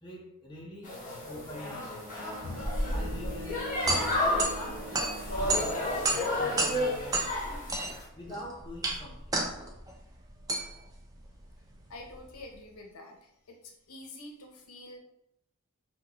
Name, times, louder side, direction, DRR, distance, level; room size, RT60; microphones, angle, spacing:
voice 1, 0.0-1.0 1.3-2.2 2.9-3.8 4.2-7.7 8.1-9.4, left 1 dB, 20° left, -3 dB, 0.6 m, -45 dB
sound 1, 0.8-8.0, left 1 dB, 35° left, 1.0 m, -32 dB
Bowed string instrument, 2.2-6.4, right 2 dB, 60° right, 0.7 m, -46 dB
sound 2, 3.5-12.5, right 2 dB, 15° right, 0.4 m, -34 dB
voice 2, 11.9-15.0, left 2 dB, 70° left, 1 dB, 0.6 m, -47 dB
4.2 x 2.3 x 2.9 m, 0.80 s
head